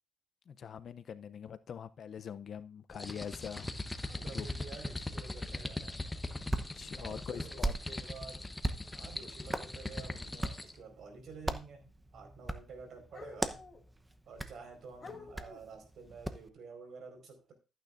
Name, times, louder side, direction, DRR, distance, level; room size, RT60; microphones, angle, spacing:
voice 1, 0.5-3.7 4.3-4.5 6.5-7.7, left 8 dB, 55° left, 0.6 m, -44 dB
sound 1, 2.9-10.8, left 2 dB, 15° left, 1.0 m, -41 dB
voice 2, 4.1-6.2 7.0-8.5 8.9-13.6 14.3-17.5, right 4 dB, 65° right, 4.7 m, -50 dB
Hands, 6.1-16.5, right 1 dB, 10° right, 0.9 m, -41 dB
sound 2, 8.8-8.9 11.4-11.5 13.1-13.9 14.6-14.7 15.0-15.8, left 4 dB, 35° left, 2.1 m, -51 dB
14.0 x 9.2 x 2.6 m
cardioid pair, 90°, 0 cm